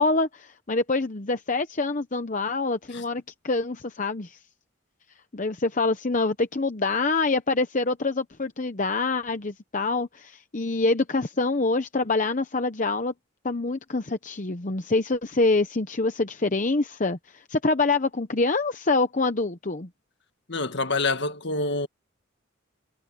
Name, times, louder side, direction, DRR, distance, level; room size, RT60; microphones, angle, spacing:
voice 1, 0.0-4.4 5.3-13.1 13.4-19.9, left 3 dB, 40° left, 0.9 m, -25 dB
voice 2, 20.5-21.9, left 3 dB, 55° left, 1.8 m, -26 dB
head